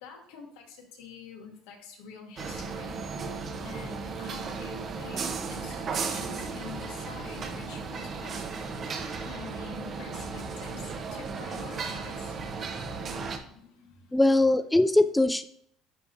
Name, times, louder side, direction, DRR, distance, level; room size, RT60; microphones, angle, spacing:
voice 1, 0.0-3.0 3.2-3.3 3.6-8.4 9.2-10.8 11.1-12.4 13.3-14.2, left 5 dB, 85° left, 1 dB, 1.6 m, -46 dB
sound 1, 2.4-13.4, right 4 dB, 45° right, 0.9 m, -35 dB
voice 2, 14.1-15.4, left 2 dB, 10° left, 10 dB, 0.3 m, -21 dB
10.0 x 3.5 x 2.7 m, 0.66 s
supercardioid pair, 95°, 0 cm